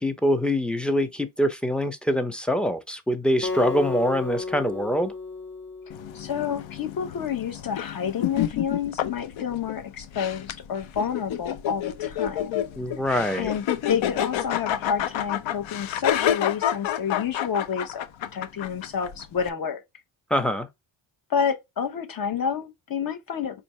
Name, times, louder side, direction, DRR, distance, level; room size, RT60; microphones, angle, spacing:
voice 1, 0.0-5.1 12.8-13.5 20.3-20.7, equal, ahead, 0.4 m, -24 dB
Acoustic guitar, 3.4-6.7, left 4 dB, 25° left, 0.8 m, -33 dB
sound 1, 5.9-19.5, left 11 dB, 70° left, 0.7 m, -29 dB
voice 2, 6.1-12.6 13.4-18.1 18.3-19.8 21.3-23.6, left 7 dB, 45° left, 1.0 m, -29 dB
4.7 x 2.6 x 3.0 m
cardioid pair, 125°, 48 cm